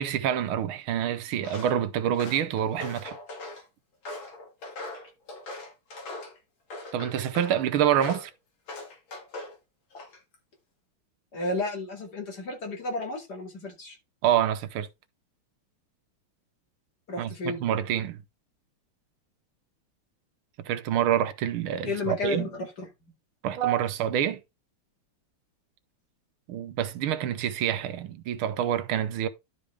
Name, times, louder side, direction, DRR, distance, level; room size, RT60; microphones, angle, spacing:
voice 1, 0.0-3.2 6.9-8.3 14.2-14.9 17.2-18.2 20.6-22.5 23.4-24.4 26.5-29.3, right 10 dB, 80° right, 1.6 m, -27 dB
Walk footsteps, 1.4-1.8 2.1-3.6 4.0-6.4 6.7-7.6 8.0-8.3 8.7-9.6 9.9-10.4, left 2 dB, 65° left, 3.2 m, -40 dB
voice 2, 11.3-14.0 17.1-17.6 21.8-22.9, left 2 dB, 50° left, 2.8 m, -32 dB
11.5 x 5.3 x 3.4 m
omnidirectional pair, 2.3 m